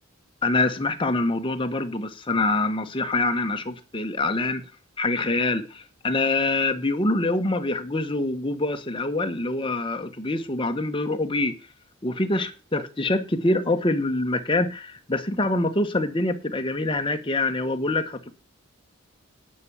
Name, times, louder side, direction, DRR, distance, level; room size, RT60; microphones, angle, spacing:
voice 1, 0.4-4.7 5.0-11.6 12.0-18.3, left 2 dB, 25° left, 1.1 m, -25 dB
10.5 x 6.0 x 7.0 m
head